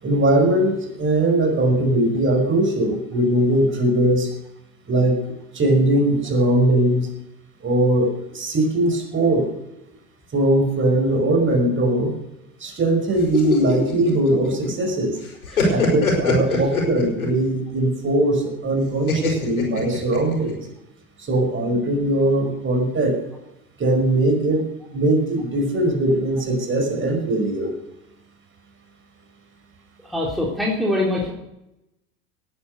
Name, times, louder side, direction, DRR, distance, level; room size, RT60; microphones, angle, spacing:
voice 1, 0.0-4.3 4.9-5.2 5.5-7.1 7.6-9.5 10.3-12.1 12.6-15.2 15.7-20.7 21.2-23.2 23.8-27.7, right 1 dB, 30° right, 3 dB, 5.4 m, -20 dB
sound 1, 13.2-14.9 15.2-17.4 19.1-20.5, left 4 dB, 80° left, 5.2 m, -23 dB
voice 2, 30.1-31.3, left 1 dB, ahead, -4 dB, 3.6 m, -23 dB
19.0 x 10.0 x 6.7 m, 0.88 s
figure-of-eight pair, 75°, 42 cm